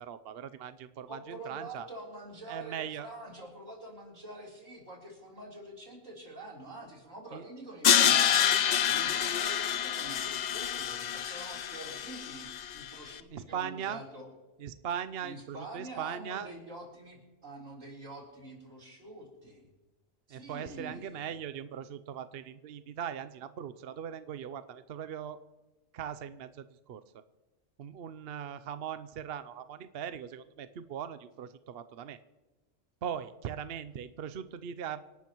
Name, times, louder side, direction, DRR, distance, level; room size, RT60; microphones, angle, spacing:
voice 1, 0.0-1.9 2.5-3.1 7.3-7.4 13.3-14.0 14.6-16.5 20.3-25.4 25.9-27.0 27.8-32.2 33.0-35.0, right 8 dB, 60° right, 12 dB, 0.7 m, -39 dB
voice 2, 1.1-14.3 15.2-19.7 20.3-21.3, right 2 dB, 75° right, -3 dB, 4.1 m, -46 dB
Crash cymbal, 7.8-12.9, left 9 dB, 65° left, 0.4 m, -27 dB
27.0 x 11.5 x 3.0 m, 1.1 s
omnidirectional pair, 1.3 m